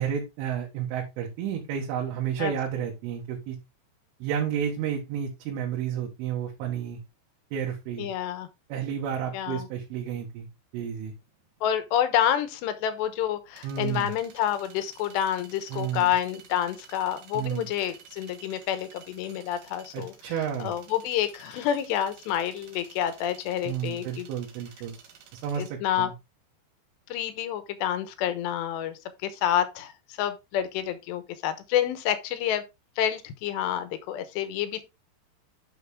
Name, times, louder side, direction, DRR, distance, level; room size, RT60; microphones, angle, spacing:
voice 1, 0.0-3.6 4.2-7.0 7.5-8.1 8.7-10.5 10.7-11.1 13.6-14.1 15.7-16.1 17.3-17.7 19.9-20.7 23.7-25.0 25.4-26.1, right 8 dB, 85° right, 4.0 m, -31 dB
voice 2, 8.0-8.5 9.3-9.7 11.6-20.1 20.6-24.3 25.6-26.1 27.1-29.9 30.2-32.6 33.0-34.8, left 10 dB, 75° left, 3.0 m, -28 dB
sound 1, 11.1-25.7, right 7 dB, 55° right, 2.9 m, -52 dB
9.9 x 6.5 x 3.6 m
omnidirectional pair, 5.5 m